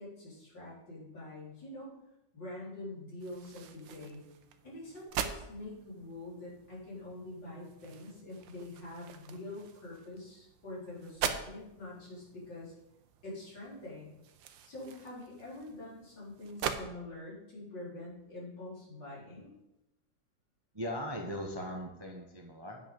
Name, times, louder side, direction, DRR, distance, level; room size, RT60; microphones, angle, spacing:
voice 1, 0.0-1.9 2.3-4.2 4.6-12.7 13.2-14.1 14.6-19.5, left 2 dB, 75° left, -7 dB, 4.6 m, -45 dB
sound 1, 3.2-16.8, right 8 dB, 85° right, 1.5 m, -43 dB
voice 2, 20.7-22.8, equal, 20° right, 1 dB, 0.7 m, -39 dB
9.2 x 6.2 x 5.3 m, 0.91 s
omnidirectional pair, 2.0 m